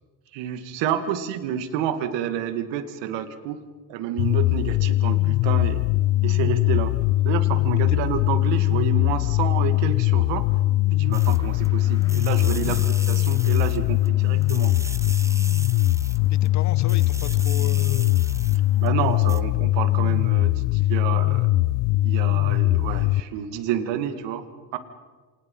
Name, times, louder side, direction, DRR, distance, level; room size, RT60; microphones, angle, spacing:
voice 1, 0.3-3.6 3.9-5.8 6.2-6.9 7.2-10.5 10.9-12.8 13.1-14.7 18.8-21.5 22.0-24.5 24.7-24.8, right 9 dB, 70° right, 10 dB, 2.4 m, -29 dB
sound 1, 4.2-23.2, left 17 dB, 65° left, 0.6 m, -21 dB
voice 2, 8.9-9.3 12.6-12.9 16.3-18.2, left 11 dB, 40° left, 16 dB, 1.2 m, -36 dB
sound 2, 11.1-19.1, left 1 dB, 10° left, 4.8 m, -53 dB
sound 3, 11.1-11.7 12.0-14.1 14.4-16.5 16.8-18.9 19.2-19.4, right 2 dB, 5° right, 0.8 m, -39 dB
29.0 x 26.5 x 5.6 m, 1.4 s
cardioid pair, 120°, 45 cm